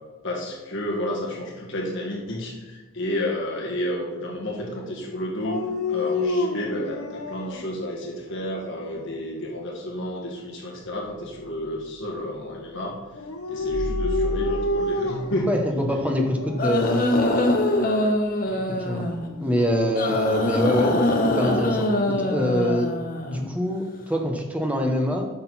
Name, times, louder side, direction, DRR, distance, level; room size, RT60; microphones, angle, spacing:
voice 1, 0.2-5.6 5.9-12.9 13.5-15.5 18.5-18.7, left 1 dB, 60° left, -2 dB, 1.8 m, -31 dB
Dog, 5.4-7.6 8.3-9.0 13.1-15.5 16.2-16.7 19.3-20.6, left 2 dB, 85° left, 0.8 m, -29 dB
sound 1, 10.8-12.1 13.6-16.2 16.7-16.8 19.8-19.9, right 1 dB, 25° right, 0.5 m, -33 dB
voice 2, 15.5-17.4 18.8-19.1 19.4-23.0 23.3-25.3, equal, 5° right, 1 dB, 1.0 m, -25 dB
sound 2, 16.6-19.3 20.0-23.5, left 1 dB, 40° left, 1.0 m, -23 dB
10.0 x 6.5 x 4.2 m, 1.3 s
head